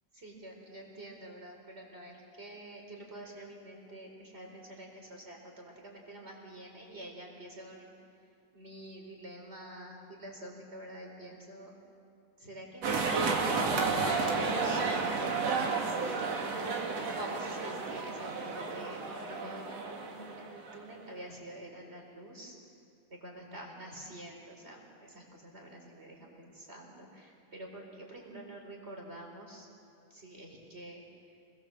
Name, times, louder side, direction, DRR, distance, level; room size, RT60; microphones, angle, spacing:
voice 1, 0.1-7.9 8.5-11.8 12.4-22.6 23.1-29.7 30.1-31.0, right 1 dB, 15° right, 0 dB, 4.2 m, -48 dB
sound 1, 12.8-20.9, right 4 dB, 45° right, 2.5 m, -32 dB
28.5 x 21.0 x 7.7 m, 2.4 s
omnidirectional pair, 4.9 m